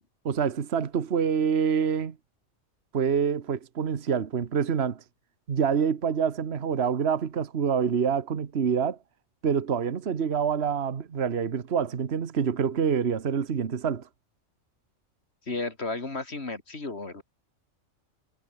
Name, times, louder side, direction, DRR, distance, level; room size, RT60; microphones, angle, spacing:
voice 1, 0.2-2.1 2.9-5.0 5.5-9.0 9.4-14.0, right 7 dB, 60° right, 1.4 m, -26 dB
voice 2, 15.5-17.2, left 3 dB, 55° left, 3.2 m, -33 dB
omnidirectional pair, 1.3 m